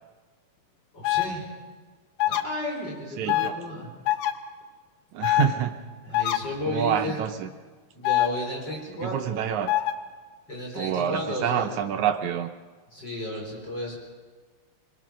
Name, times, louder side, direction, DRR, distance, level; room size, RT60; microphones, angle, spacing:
voice 1, 0.9-1.5 2.2-3.9 6.0-7.2 8.0-9.4 10.5-11.7 12.9-14.0, left 1 dB, 25° left, -1 dB, 5.4 m, -33 dB
sound 1, 1.0-1.3 2.2-2.4 3.3-3.5 4.1-4.3 5.2-5.5 6.1-6.4 8.0-8.3 9.7-9.9, left 15 dB, 75° left, 2.7 m, -23 dB
voice 2, 3.2-3.6 5.1-5.7 6.1-6.3 6.7-7.5 9.0-9.7 10.8-12.5, right 9 dB, 75° right, 6 dB, 1.7 m, -27 dB
23.5 x 21.5 x 6.2 m, 1.4 s
omnidirectional pair, 4.2 m